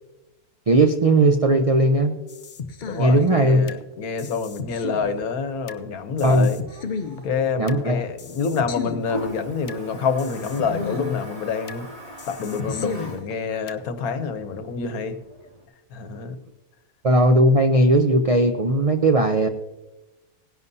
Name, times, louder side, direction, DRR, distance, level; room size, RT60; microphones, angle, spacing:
voice 1, 0.7-2.2 3.0-3.6 6.2-6.5 7.6-8.0 17.0-19.5, right 1 dB, 65° right, 6 dB, 0.3 m, -17 dB
sound 1, 2.3-3.8 4.2-5.8 6.2-7.8 8.2-9.8 10.2-11.8 12.2-13.8, left 5 dB, 50° left, 0.6 m, -34 dB
voice 2, 2.9-6.6 7.2-11.9 12.3-15.2 15.9-16.4, left 5 dB, 80° left, 10 dB, 1.3 m, -27 dB
Toilet flush, 4.1-15.6, left 1 dB, 25° right, 2.6 m, -42 dB
18.0 x 10.5 x 2.7 m, 1.1 s
omnidirectional pair, 1.5 m